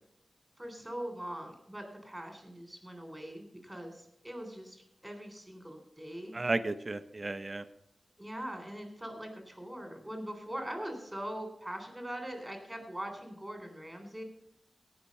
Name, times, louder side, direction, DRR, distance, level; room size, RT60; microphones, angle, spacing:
voice 1, 0.6-6.4 8.2-14.2, right 1 dB, 10° right, 4 dB, 3.4 m, -42 dB
voice 2, 6.3-7.6, right 2 dB, 35° right, 11 dB, 0.7 m, -33 dB
17.5 x 5.9 x 5.4 m, 0.79 s
wide cardioid pair, 85°, 0 cm